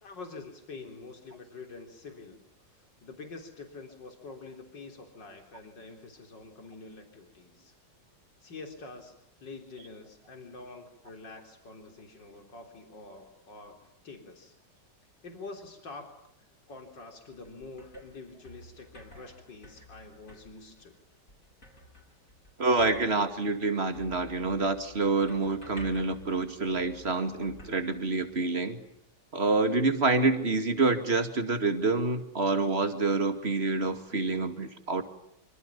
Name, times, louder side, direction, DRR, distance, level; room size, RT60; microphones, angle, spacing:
voice 1, 0.0-2.4 2.7-7.7 8.4-9.1 9.4-14.5 15.2-16.1 16.4-21.0, left 3 dB, 80° left, 5 dB, 4.3 m, -46 dB
sound 1, 17.1-28.6, left 1 dB, 45° left, 6.7 m, -52 dB
voice 2, 22.6-28.8 29.3-35.0, right 3 dB, 35° right, 8 dB, 2.7 m, -27 dB
26.5 x 25.5 x 7.1 m, 0.78 s
omnidirectional pair, 1.9 m